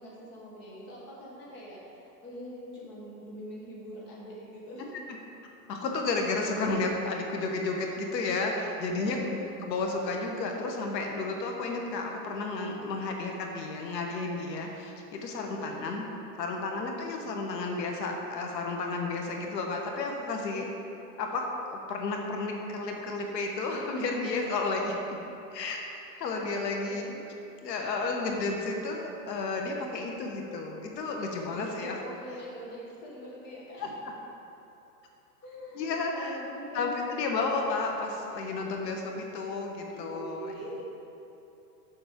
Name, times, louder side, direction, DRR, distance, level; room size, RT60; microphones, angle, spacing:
voice 1, 0.0-4.9 9.0-9.5 15.4-15.9 20.5-20.8 26.8-27.2 31.5-34.0 35.4-37.4 39.9-40.8, equal, 20° left, -5 dB, 1.2 m, -43 dB
voice 2, 5.7-16.0 16.4-20.7 21.2-25.2 25.5-25.8 26.2-27.0 27.6-32.0 33.8-33.9 35.7-36.4 36.7-40.5, left 3 dB, 85° left, 1 dB, 1.4 m, -32 dB
7.0 x 6.0 x 5.1 m, 2.9 s
supercardioid pair, 175°, 48 cm